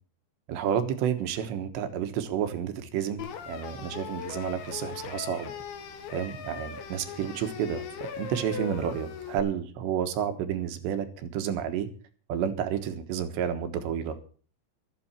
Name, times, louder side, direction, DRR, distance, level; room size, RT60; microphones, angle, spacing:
voice 1, 0.5-5.5 6.1-11.9 12.3-14.2, right 9 dB, 70° right, 8 dB, 3.3 m, -30 dB
sound 1, 3.2-9.4, left 7 dB, 70° left, 3.9 m, -39 dB
15.5 x 13.0 x 4.4 m, 0.40 s
omnidirectional pair, 5.6 m